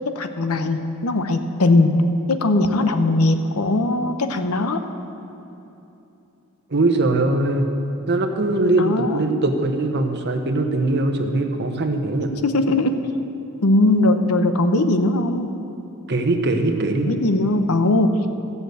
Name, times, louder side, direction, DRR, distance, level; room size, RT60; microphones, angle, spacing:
voice 1, 0.1-1.9 2.3-4.8 8.8-9.2 12.3-13.0 13.6-15.5 17.0-18.2, left 2 dB, 80° left, 8 dB, 0.8 m, -19 dB
voice 2, 6.7-7.7 8.1-12.3 16.1-17.1, right 2 dB, 50° right, 5 dB, 1.0 m, -21 dB
13.5 x 6.9 x 8.0 m, 2.9 s
head